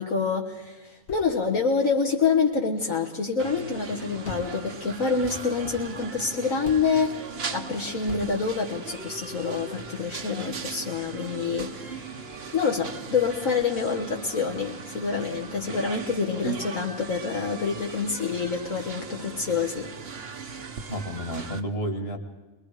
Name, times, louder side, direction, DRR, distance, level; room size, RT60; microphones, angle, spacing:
voice 1, 0.0-7.1 7.5-19.9, left 5 dB, 65° left, 0 dB, 2.0 m, -27 dB
sound 1, 1.0-3.5 3.8-3.9 4.2-7.1 8.0-8.5, left 3 dB, 85° left, 2.4 m, -44 dB
sound 2, 3.4-21.6, right 5 dB, 45° right, 1.3 m, -39 dB
voice 2, 20.9-22.2, right 1 dB, 45° left, 5 dB, 2.5 m, -30 dB
24.5 x 22.0 x 5.0 m, 1.2 s
omnidirectional pair, 1.5 m